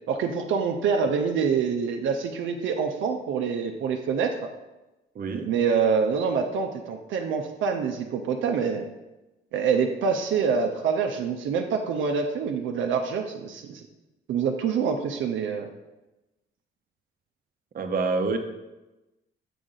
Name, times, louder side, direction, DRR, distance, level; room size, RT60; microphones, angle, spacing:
voice 1, 0.1-4.4 5.4-8.9 9.5-13.8 14.3-15.7, right 6 dB, 75° right, 4 dB, 0.6 m, -26 dB
voice 2, 5.1-5.5 17.7-18.4, right 4 dB, 45° right, 5 dB, 0.8 m, -27 dB
6.3 x 5.0 x 3.8 m, 1.0 s
cardioid pair, 90°, 20 cm